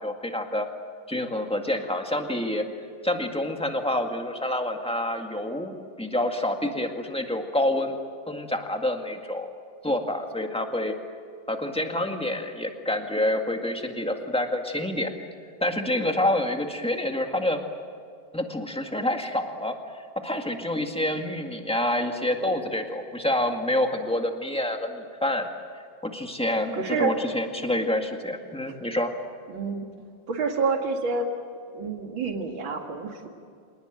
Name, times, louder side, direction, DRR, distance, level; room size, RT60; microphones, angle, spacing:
voice 1, 0.0-0.7 1.1-2.6 3.0-8.0 8.3-9.5 9.8-10.9 11.5-15.1 15.6-17.6 18.3-25.5 26.0-29.1, left 1 dB, 5° left, 4 dB, 1.8 m, -27 dB
voice 2, 26.7-27.1 29.5-29.9 30.3-31.3 31.7-33.3, right 4 dB, 90° right, 3 dB, 2.9 m, -28 dB
27.0 x 19.0 x 9.1 m, 2.2 s
omnidirectional pair, 2.1 m